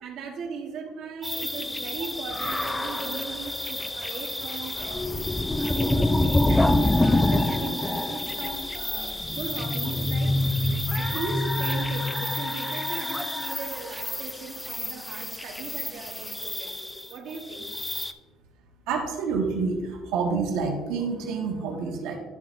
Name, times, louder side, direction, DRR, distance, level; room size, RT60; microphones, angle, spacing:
voice 1, 0.0-17.7, right 5 dB, 60° right, 0 dB, 1.1 m, -38 dB
sound 1, 1.2-18.1, left 1 dB, 10° left, 0.3 m, -27 dB
voice 2, 18.9-22.2, right 4 dB, 85° right, 1 dB, 1.3 m, -28 dB
11.5 x 5.4 x 2.5 m, 1.4 s
cardioid pair, 135°, 0 cm